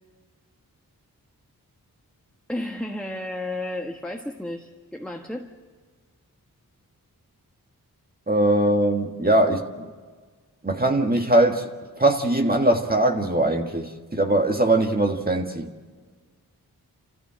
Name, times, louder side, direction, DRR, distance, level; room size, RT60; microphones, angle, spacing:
voice 1, 2.5-5.5, left 1 dB, 5° left, 2 dB, 1.5 m, -32 dB
voice 2, 8.3-9.9 10.6-11.7 12.0-15.7, right 1 dB, 25° right, 3 dB, 1.7 m, -21 dB
27.0 x 15.5 x 7.7 m, 1.5 s
cardioid pair, 50°, 37 cm